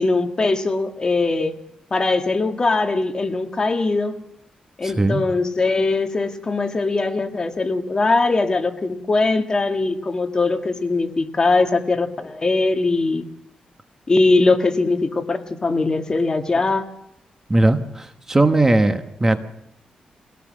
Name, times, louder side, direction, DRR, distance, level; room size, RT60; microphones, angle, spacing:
voice 1, 0.0-1.6 1.9-4.2 4.8-13.3 14.1-16.8, left 3 dB, 30° left, 5 dB, 1.7 m, -21 dB
voice 2, 4.8-5.2 17.5-19.4, right 2 dB, 20° right, 8 dB, 1.2 m, -18 dB
23.0 x 18.0 x 6.3 m, 0.81 s
cardioid pair, 115°, 2 cm